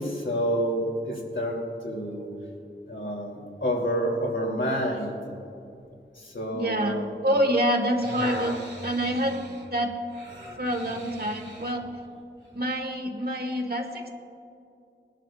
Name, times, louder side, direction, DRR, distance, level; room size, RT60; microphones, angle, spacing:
voice 1, 0.0-2.3 2.9-5.2 6.1-7.1, equal, 75° left, -2 dB, 3.0 m, -28 dB
voice 2, 6.5-9.4 9.7-9.9 10.6-11.9 12.6-14.1, equal, 55° right, 3 dB, 1.7 m, -27 dB
sound 1, 7.7-11.8 12.5-12.6, right 1 dB, 80° right, 3.0 m, -39 dB
21.0 x 11.5 x 2.5 m, 2.6 s
wide cardioid pair, 50°, 19 cm